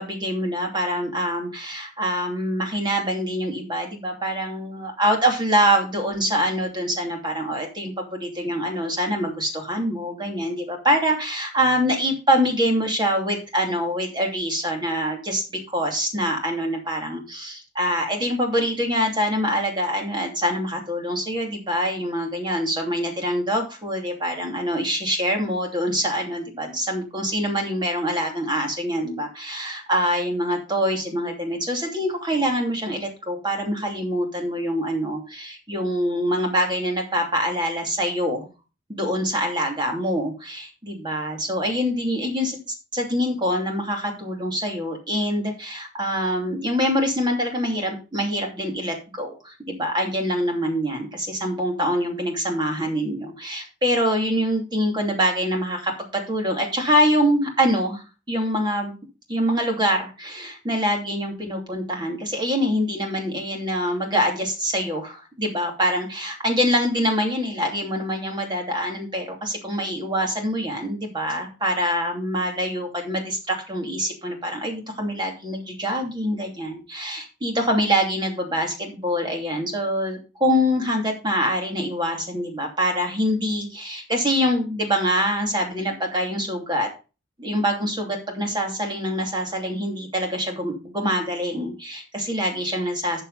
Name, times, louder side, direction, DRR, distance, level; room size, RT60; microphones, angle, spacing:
voice 1, 0.0-38.5 38.9-42.6 42.9-59.0 59.3-86.9 87.4-93.2, equal, 25° right, 2 dB, 2.8 m, -25 dB
13.0 x 6.8 x 4.1 m, 0.31 s
head